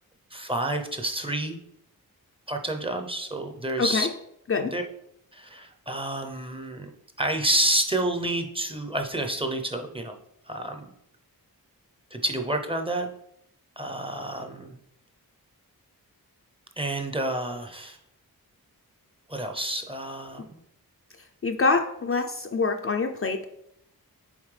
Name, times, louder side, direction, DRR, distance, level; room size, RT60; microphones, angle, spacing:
voice 1, 0.3-1.6 2.5-4.1 4.6-4.8 5.3-6.9 7.2-10.1 10.5-10.9 12.1-13.1 13.8-14.7 16.8-18.0 19.3-20.6, right 1 dB, 15° right, 4 dB, 0.6 m, -29 dB
voice 2, 3.8-4.1 4.5-4.7 21.4-23.5, left 4 dB, 40° left, 5 dB, 0.4 m, -25 dB
7.2 x 4.2 x 3.3 m, 0.75 s
wide cardioid pair, 90°, 36 cm